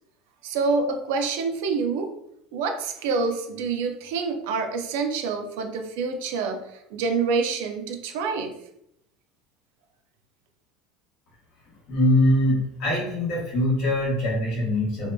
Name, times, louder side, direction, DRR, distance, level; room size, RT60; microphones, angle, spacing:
voice 1, 0.4-2.1 2.5-8.5, right 4 dB, 80° right, 5 dB, 0.4 m, -27 dB
voice 2, 11.9-15.1, left 1 dB, 50° left, -4 dB, 0.9 m, -23 dB
2.7 x 2.2 x 2.2 m, 0.76 s
cardioid pair, 175°, 0 cm